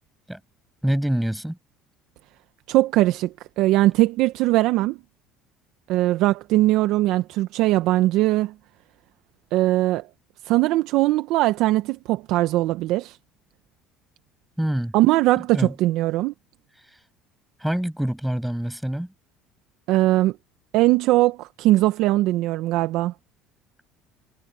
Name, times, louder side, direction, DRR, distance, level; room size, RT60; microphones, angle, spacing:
voice 1, 0.8-1.6 14.6-15.0 15.5-15.7 17.6-19.1, right 1 dB, 5° right, 6.6 m, -25 dB
voice 2, 2.7-5.0 5.9-8.5 9.5-10.1 10.4-13.2 14.9-16.3 19.9-20.3 20.7-23.1, right 17 dB, 70° right, 0.9 m, -20 dB
supercardioid pair, 90°, 0 cm